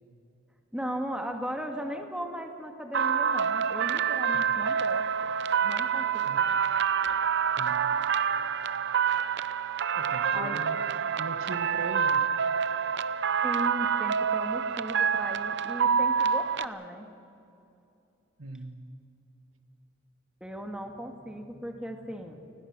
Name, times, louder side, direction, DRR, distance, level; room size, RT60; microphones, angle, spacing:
voice 1, 0.7-5.3 5.6-6.6 7.1-7.2 10.3-10.6 13.4-17.1 20.4-22.4, equal, 5° right, 3 dB, 1.9 m, -37 dB
sound 1, 2.9-16.7, right 7 dB, 60° right, 0.7 m, -27 dB
voice 2, 9.9-10.8 11.2-12.2 18.4-18.8, right 3 dB, 85° right, 7 dB, 1.7 m, -39 dB
29.0 x 20.5 x 6.2 m, 2.7 s
head